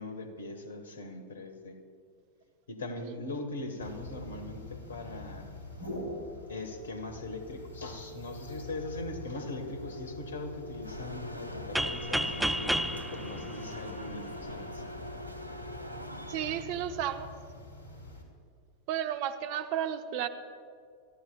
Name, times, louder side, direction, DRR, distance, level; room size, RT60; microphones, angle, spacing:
voice 1, 0.0-1.8 2.7-5.5 6.5-14.8, left 2 dB, 70° left, 7 dB, 1.6 m, -40 dB
sound 1, 3.8-18.2, left 2 dB, 85° right, 3.2 m, -44 dB
sound 2, 10.8-16.6, equal, 90° left, 0.8 m, -44 dB
sound 3, 11.8-14.5, equal, ahead, 0.5 m, -32 dB
voice 2, 16.3-17.3 18.9-20.3, right 10 dB, 45° right, 9 dB, 0.9 m, -33 dB
29.0 x 14.0 x 2.4 m, 2.2 s
figure-of-eight pair, 90°, 0 cm